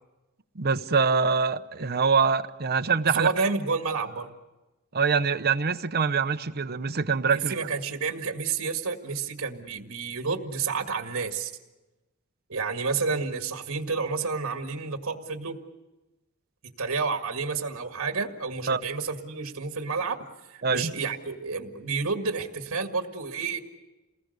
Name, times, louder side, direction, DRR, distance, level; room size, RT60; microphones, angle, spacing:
voice 1, 0.5-3.4 4.9-7.5 18.7-18.8 20.6-20.9, right 5 dB, 45° right, 10 dB, 0.8 m, -24 dB
voice 2, 3.1-4.3 7.3-11.5 12.5-15.6 16.8-20.2 20.5-23.6, right 4 dB, 65° right, 5 dB, 1.9 m, -30 dB
28.5 x 20.0 x 6.6 m, 1.1 s
head